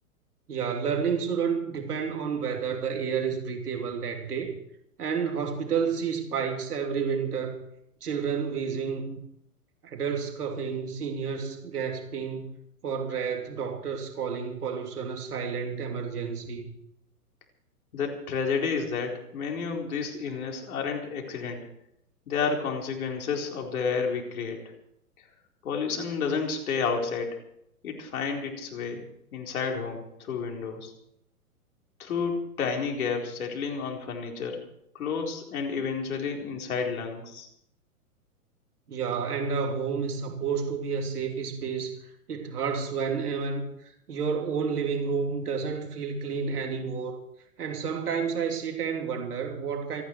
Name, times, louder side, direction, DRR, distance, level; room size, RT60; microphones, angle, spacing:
voice 1, 0.5-4.5 5.0-7.6 8.0-9.2 9.8-12.5 12.8-16.7 38.9-41.9 42.3-47.2 47.6-50.0, right 6 dB, 70° right, 3.2 m, -30 dB
voice 2, 17.9-21.6 22.3-24.6 25.6-27.4 27.8-29.0 29.3-30.9 32.0-34.6 34.9-37.5, left 5 dB, 65° left, 4.3 m, -30 dB
28.5 x 9.9 x 4.7 m
hypercardioid pair, 115°, 46 cm